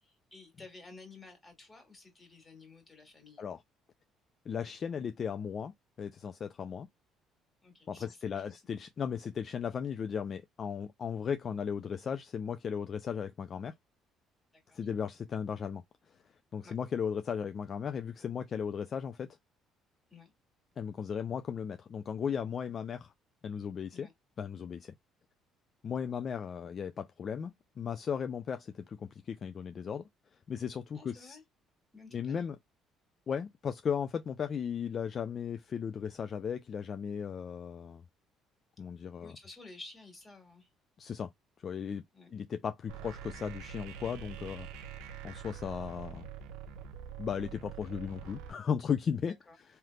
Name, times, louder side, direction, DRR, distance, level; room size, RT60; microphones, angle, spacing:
voice 1, 0.0-3.4 7.6-8.4 14.5-14.9 16.6-16.7 20.1-20.3 23.9-24.1 25.9-26.1 30.9-31.4 31.9-32.5 39.2-40.7 42.1-42.3 49.2-49.6, left 3 dB, 20° left, 2.0 m, -53 dB
voice 2, 4.5-6.9 7.9-13.7 14.7-15.8 16.5-19.3 20.8-23.1 23.4-24.1 24.4-24.9 25.8-30.1 30.5-31.4 32.1-32.6 33.3-38.0 38.8-39.3 41.0-41.3 41.6-42.0 42.3-44.7 45.2-46.3 47.2-49.3, left 7 dB, 45° left, 0.4 m, -36 dB
sound 1, 42.9-48.5, right 8 dB, 85° right, 0.6 m, -45 dB
3.3 x 2.9 x 2.3 m
supercardioid pair, 80°, 0 cm